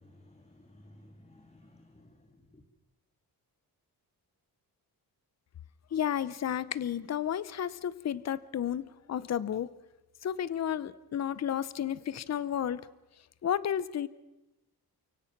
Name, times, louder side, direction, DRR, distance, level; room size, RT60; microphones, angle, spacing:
voice 1, 0.0-2.7, left 1 dB, 15° left, 5 dB, 1.8 m, -57 dB
voice 2, 5.9-9.7 10.2-12.8 13.4-14.1, left 9 dB, 40° left, 18 dB, 0.7 m, -32 dB
29.5 x 17.5 x 6.0 m, 1.0 s
wide cardioid pair, 145°, 39 cm